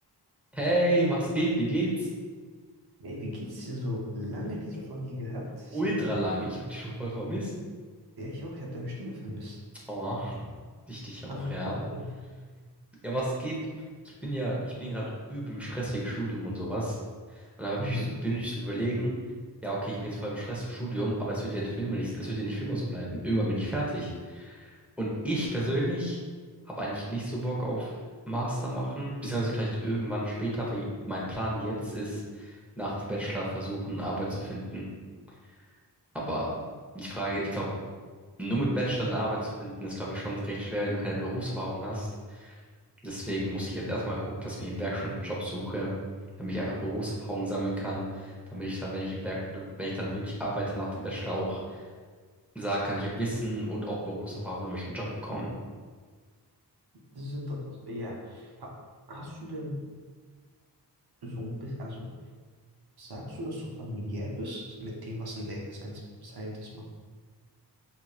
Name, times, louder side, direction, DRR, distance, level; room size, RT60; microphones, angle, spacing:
voice 1, 0.5-2.1 5.7-7.5 9.9-10.5 10.9-11.8 13.0-13.5 14.2-15.0 15.3-17.0 17.3-19.1 19.6-26.2 26.8-27.9 28.3-34.8 36.1-36.5 36.9-37.7 38.4-42.5 43.0-45.9 46.4-51.8 52.5-55.5, right 1 dB, 5° right, -6 dB, 1.1 m, -31 dB
voice 2, 3.0-6.2 8.2-9.6 11.3-12.1 17.8-18.1 57.1-58.7 59.1-59.8 61.2-62.1 63.0-66.8, left 1 dB, 65° right, -2 dB, 0.8 m, -37 dB
4.8 x 2.9 x 2.4 m, 1.5 s
wide cardioid pair, 80°, 42 cm